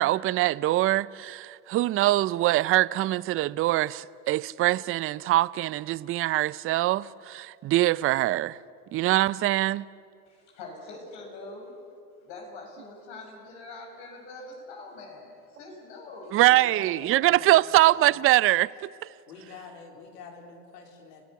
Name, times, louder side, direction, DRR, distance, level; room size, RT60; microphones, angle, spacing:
voice 1, 0.0-8.6 8.9-9.8 16.3-18.7, right 16 dB, 30° right, 0.4 m, -23 dB
voice 2, 10.2-11.8 12.2-16.4, left 2 dB, 60° left, 6.6 m, -44 dB
voice 3, 16.5-17.7 19.3-21.2, left 5 dB, 90° left, 3.6 m, -46 dB
30.0 x 15.5 x 7.1 m
hypercardioid pair, 90°, 47 cm